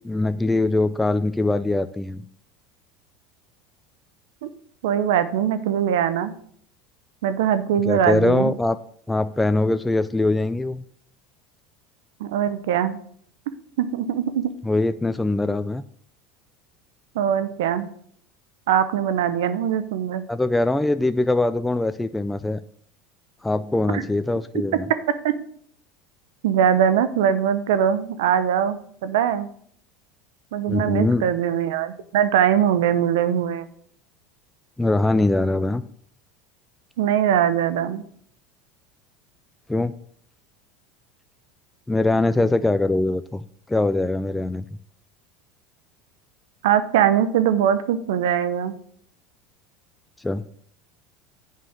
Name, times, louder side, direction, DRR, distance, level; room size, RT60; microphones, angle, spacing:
voice 1, 0.0-2.2 7.9-8.8 9.1-10.8 14.6-15.8 20.3-22.6 23.4-24.9 30.7-31.2 34.8-35.8 39.7-40.0 41.9-44.6 50.2-50.4, left 2 dB, 10° left, 11 dB, 0.4 m, -22 dB
voice 2, 4.8-6.3 7.2-8.5 12.2-13.0 13.8-14.5 17.1-17.9 18.7-20.2 23.9-24.0 25.2-25.3 26.4-29.5 30.5-33.7 37.0-38.0 46.6-48.8, right 9 dB, 80° right, 13 dB, 0.8 m, -21 dB
7.5 x 5.5 x 6.3 m, 0.62 s
supercardioid pair, 100°, 0 cm